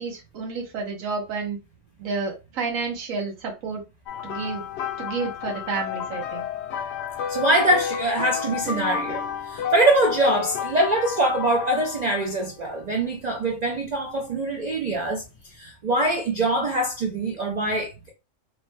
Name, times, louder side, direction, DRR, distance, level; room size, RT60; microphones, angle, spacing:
voice 1, 0.0-1.6 2.0-3.8 4.2-4.6 5.0-6.4, right 4 dB, 85° right, 1.3 m, -30 dB
sound 1, 4.1-12.3 13.2-13.4 15.3-15.4, left 8 dB, 65° left, 0.7 m, -31 dB
voice 2, 7.3-15.2 15.5-18.1, right 1 dB, 55° right, 0.4 m, -23 dB
3.1 x 2.1 x 3.0 m
omnidirectional pair, 1.4 m